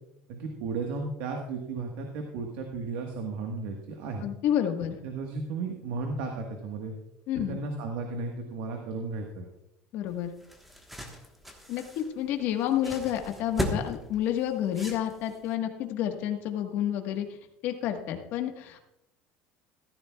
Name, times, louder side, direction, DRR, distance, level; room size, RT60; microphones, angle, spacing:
voice 1, 0.3-4.2 5.0-6.9 7.4-9.4, right 4 dB, 75° right, 3 dB, 1.5 m, -34 dB
voice 2, 4.2-5.0 7.3-7.6 9.9-10.3 11.7-17.3 17.6-18.8, left 10 dB, 55° left, 5 dB, 1.4 m, -29 dB
sound 1, 10.1-15.5, equal, 5° right, 1.3 m, -37 dB
15.0 x 13.0 x 2.4 m, 0.84 s
cardioid pair, 150°, 4 cm